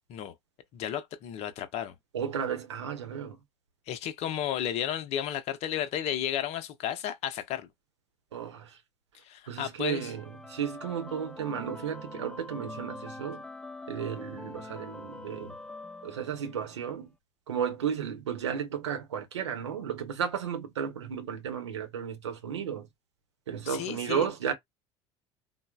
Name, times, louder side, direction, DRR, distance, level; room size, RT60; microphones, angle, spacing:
voice 1, 0.7-1.9 3.9-7.7 9.2-10.1 23.7-24.3, left 10 dB, 45° left, 0.7 m, -33 dB
voice 2, 2.1-3.4 8.3-8.8 9.5-13.4 13.9-15.6 16.0-17.1 17.5-22.9 23.5-24.5, right 8 dB, 70° right, 0.8 m, -33 dB
sound 1, 9.9-16.8, left 2 dB, 5° left, 0.4 m, -44 dB
3.9 x 2.0 x 2.3 m
figure-of-eight pair, 65°, 15 cm